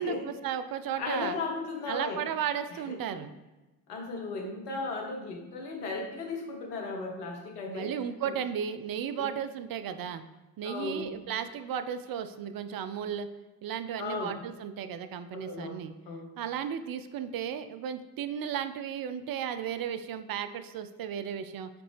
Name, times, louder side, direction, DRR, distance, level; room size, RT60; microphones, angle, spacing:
voice 1, 0.0-1.4 1.9-3.3 7.7-10.2 10.6-13.3 13.6-15.9 16.4-21.7, right 8 dB, 50° right, 11 dB, 0.6 m, -34 dB
voice 2, 1.0-2.2 2.9-3.0 3.9-7.9 8.2-8.3 9.2-9.3 10.6-11.1 14.0-14.3 15.3-15.8 16.1-16.3, left 3 dB, 90° left, 1 dB, 0.9 m, -35 dB
7.7 x 3.9 x 3.3 m, 1.1 s
hypercardioid pair, 40°, 45 cm